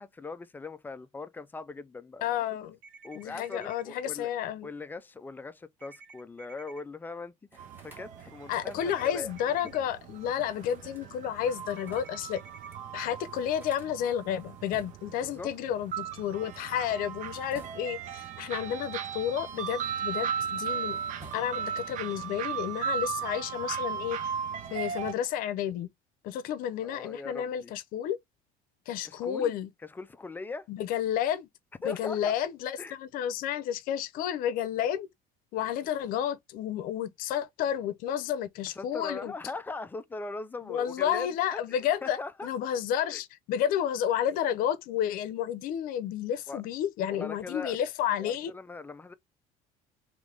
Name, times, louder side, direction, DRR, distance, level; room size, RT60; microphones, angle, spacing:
voice 1, 0.0-2.4 3.0-4.3 4.6-9.3 15.2-15.5 26.8-27.7 29.0-29.6 29.9-30.7 31.8-32.3 32.8-33.0 38.7-42.5 43.1-43.2 46.5-46.6 47.1-47.8 48.2-49.1, left 3 dB, 10° left, 0.3 m, -40 dB
voice 2, 2.2-2.8 3.2-4.7 8.5-12.4 12.9-21.0 21.3-24.2 24.7-25.9 26.2-28.2 28.9-29.7 30.7-31.5 31.8-35.1 35.5-39.3 40.6-48.5, left 10 dB, 60° left, 0.6 m, -31 dB
sound 1, 2.8-3.8 5.8-6.8 8.8-9.8 11.8-12.8, right 4 dB, 70° right, 1.8 m, -52 dB
sound 2, 7.5-9.1 10.4-12.3 12.7-12.8 13.0-15.2 16.3-18.2 18.9-20.2 20.5-21.8, right 2 dB, 10° right, 1.4 m, -55 dB
sound 3, 7.6-25.1, right 7 dB, 50° right, 0.6 m, -37 dB
3.3 x 3.1 x 3.7 m
cardioid pair, 150°, 16 cm